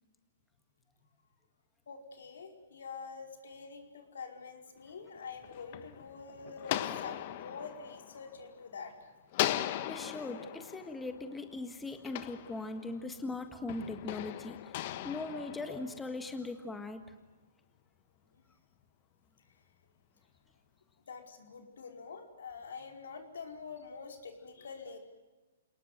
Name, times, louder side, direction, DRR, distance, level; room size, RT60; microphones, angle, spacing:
voice 1, 1.9-9.1 21.0-25.0, left 5 dB, 80° left, 4 dB, 5.0 m, -46 dB
sound 1, 5.2-8.9 9.3-13.1 13.7-16.3, left 13 dB, 45° left, 1.3 m, -39 dB
voice 2, 9.8-17.0, left 3 dB, 5° left, 7 dB, 1.6 m, -40 dB
28.5 x 19.5 x 9.4 m, 1.2 s
hypercardioid pair, 145°, 0 cm